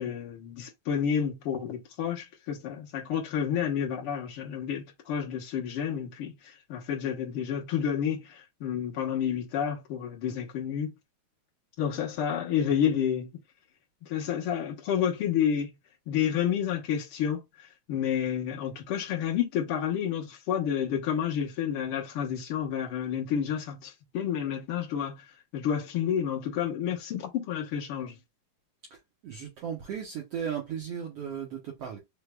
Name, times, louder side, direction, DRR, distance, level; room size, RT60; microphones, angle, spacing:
voice 1, 0.0-10.9 11.8-13.3 14.0-15.7 16.1-28.2, left 8 dB, 65° left, 1.5 m, -30 dB
voice 2, 29.2-32.0, right 8 dB, 80° right, 1.3 m, -36 dB
5.1 x 3.4 x 2.3 m
omnidirectional pair, 4.0 m